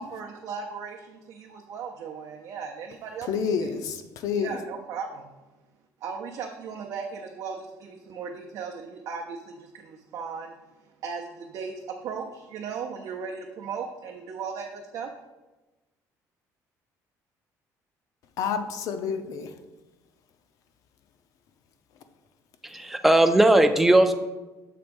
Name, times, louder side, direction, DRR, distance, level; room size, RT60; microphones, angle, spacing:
voice 1, 0.0-3.3 3.6-3.7 4.3-5.3 6.0-10.5 11.0-15.1, right 5 dB, 55° right, 1 dB, 0.5 m, -37 dB
voice 2, 3.3-4.6 18.4-19.5, left 6 dB, 60° left, 9 dB, 0.6 m, -29 dB
voice 3, 22.6-24.1, right 1 dB, 5° right, 7 dB, 0.4 m, -18 dB
6.7 x 3.4 x 5.2 m, 1.1 s
cardioid pair, 170°, 6 cm